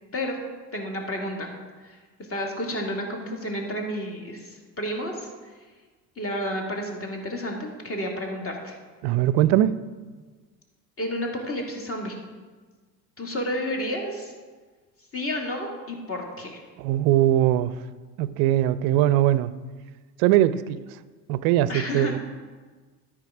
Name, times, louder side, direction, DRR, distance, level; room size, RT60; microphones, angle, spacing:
voice 1, 0.7-1.5 1.8-2.0 2.3-5.3 6.2-8.8 11.0-12.2 13.2-14.3 15.1-16.6 21.7-22.1, equal, 25° left, 1 dB, 2.2 m, -31 dB
voice 2, 9.0-9.7 16.8-17.8 18.2-19.5 20.2-20.8 21.3-22.2, right 13 dB, 45° right, 16 dB, 0.5 m, -21 dB
12.5 x 5.0 x 4.9 m, 1.4 s
hypercardioid pair, 70°, 50 cm